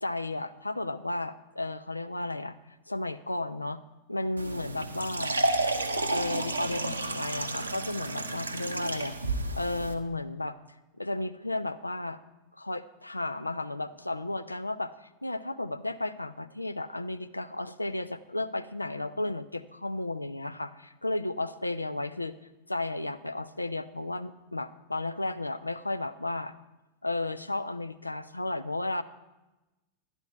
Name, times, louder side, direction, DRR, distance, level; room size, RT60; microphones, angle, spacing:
voice 1, 0.0-2.6 2.9-3.8 4.1-5.4 6.1-10.6 11.0-12.2 12.5-22.4 22.7-26.5 27.0-29.0, left 2 dB, 85° left, 12 dB, 0.5 m, -33 dB
sound 1, 4.4-9.9, right 2 dB, 80° right, 0.8 m, -31 dB
11.5 x 10.5 x 4.4 m, 1.0 s
figure-of-eight pair, 90°, 0 cm